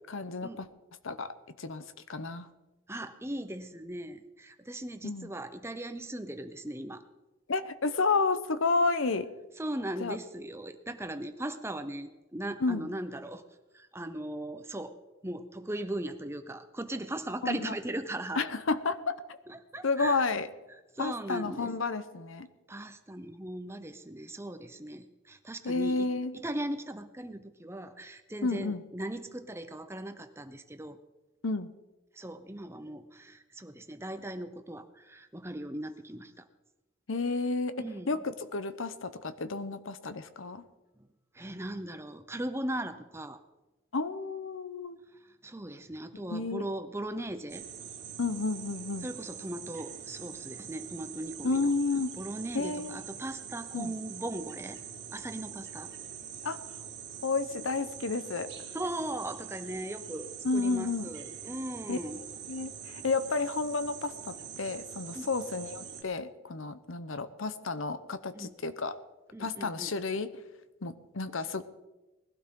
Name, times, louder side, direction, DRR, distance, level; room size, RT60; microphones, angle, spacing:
voice 1, 0.1-0.7 1.0-1.8 2.1-2.5 5.0-5.3 7.5-9.3 10.0-10.2 12.6-12.9 17.4-17.7 18.4-19.4 19.8-20.5 21.0-22.5 25.6-26.3 28.4-28.8 31.4-31.7 37.1-38.2 38.5-40.6 43.9-45.0 46.3-46.6 48.2-49.1 51.4-52.1 52.5-53.0 53.7-53.9 56.4-56.6 57.2-58.5 60.4-61.1 61.9-62.0 62.5-69.0 69.4-70.3 70.8-71.6, left 3 dB, 75° left, 12 dB, 0.9 m, -31 dB
voice 2, 2.9-7.0 9.6-13.4 13.7-14.9 15.2-18.4 19.5-20.3 20.9-21.7 22.7-26.1 26.3-31.0 32.1-36.5 37.8-38.2 41.3-43.4 45.2-47.6 49.0-51.7 52.2-54.8 55.1-55.9 58.7-62.2 65.1-65.3 68.3-68.5 69.3-69.9, right 1 dB, 10° right, 9 dB, 0.7 m, -38 dB
sound 1, 47.5-66.0, right 8 dB, 50° right, 1.9 m, -44 dB
20.0 x 12.0 x 3.8 m, 1.1 s
head